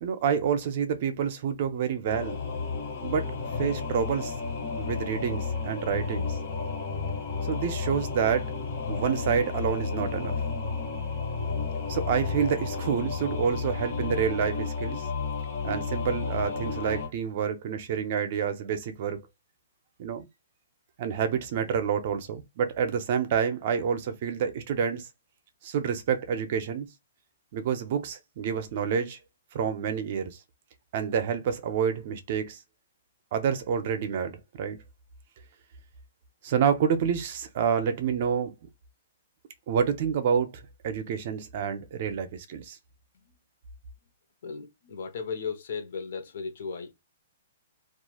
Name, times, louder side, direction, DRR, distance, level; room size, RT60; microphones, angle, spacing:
voice 1, 0.0-2.4 3.0-4.3 4.8-6.4 7.5-8.6 8.9-10.3 11.9-15.1 15.6-19.2 20.0-20.3 21.0-25.1 25.6-26.9 27.5-29.2 29.5-30.4 30.9-32.6 33.3-34.8 36.4-38.5 39.7-42.8, right 7 dB, 45° right, 0.6 m, -28 dB
Singing / Musical instrument, 2.1-17.1, left 4 dB, 30° left, 1.5 m, -32 dB
voice 2, 44.4-46.9, left 5 dB, 60° left, 0.8 m, -36 dB
3.1 x 2.4 x 2.3 m
hypercardioid pair, 160°, 0 cm